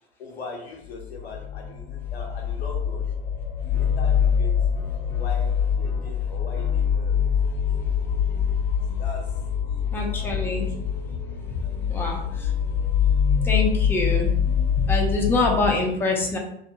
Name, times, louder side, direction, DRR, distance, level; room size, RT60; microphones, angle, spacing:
voice 1, 0.2-3.1 3.6-4.5 5.1-7.3 7.8-7.9 8.9-9.8 10.1-10.3 10.6-10.7 11.6-11.9, left 3 dB, 80° left, 1 dB, 0.7 m, -41 dB
sound 1, 0.9-15.7, left 7 dB, 50° left, 0.7 m, -24 dB
sound 2, 3.7-12.0, equal, 25° right, 0.8 m, -49 dB
voice 2, 9.9-10.7 11.1-11.2 11.5-12.6 13.4-16.4, left 2 dB, 5° left, 0 dB, 0.5 m, -26 dB
2.7 x 2.2 x 2.7 m, 0.75 s
figure-of-eight pair, 75°, 31 cm